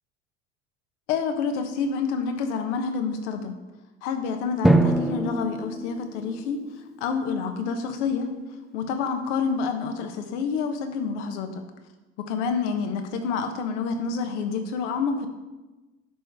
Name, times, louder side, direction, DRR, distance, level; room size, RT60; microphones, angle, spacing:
voice 1, 1.1-3.5 4.0-6.7 7.0-8.3 8.7-11.6 12.2-15.3, left 5 dB, 70° left, 6 dB, 1.1 m, -28 dB
Drum, 4.6-7.2, right 1 dB, ahead, 0.4 m, -24 dB
11.0 x 4.6 x 3.5 m, 1.1 s
hypercardioid pair, 75°, 37 cm